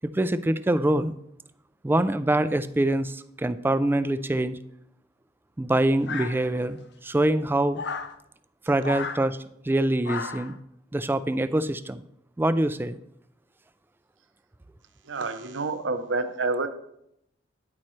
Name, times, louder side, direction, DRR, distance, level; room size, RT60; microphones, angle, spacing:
voice 1, 0.0-1.1 1.8-4.6 5.6-7.8 8.7-9.4 9.6-10.6 10.9-12.0 12.4-13.0, right 1 dB, 10° right, 13 dB, 0.3 m, -24 dB
sound 1, 6.1-6.8 7.7-8.2 8.8-9.2 10.0-10.6, left 5 dB, 65° left, 0.6 m, -34 dB
voice 2, 15.0-16.7, right 3 dB, 70° right, 9 dB, 0.7 m, -28 dB
9.7 x 8.6 x 3.2 m, 0.76 s
head